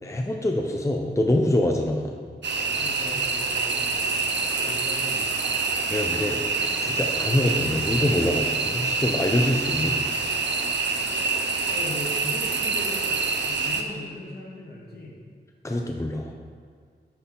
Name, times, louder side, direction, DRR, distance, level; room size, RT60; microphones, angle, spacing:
voice 1, 0.0-2.2 5.9-6.4 6.8-10.0 15.6-16.3, left 1 dB, 15° left, 2 dB, 0.6 m, -25 dB
sound 1, 2.4-13.8, right 4 dB, 85° right, 0.6 m, -26 dB
voice 2, 2.8-4.1 4.6-5.3 11.7-13.2 13.4-15.2, left 1 dB, 65° left, -4 dB, 1.7 m, -38 dB
9.7 x 4.0 x 3.8 m, 2.1 s
cardioid pair, 55°, 18 cm